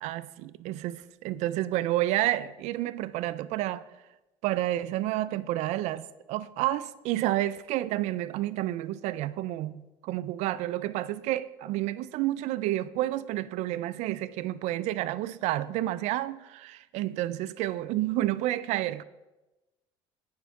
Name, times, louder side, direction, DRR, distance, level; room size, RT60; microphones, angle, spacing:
voice 1, 0.0-1.0 1.2-3.8 4.4-19.0, right 15 dB, 70° right, 0.4 m, -30 dB
9.3 x 5.3 x 4.7 m
supercardioid pair, 105°, 12 cm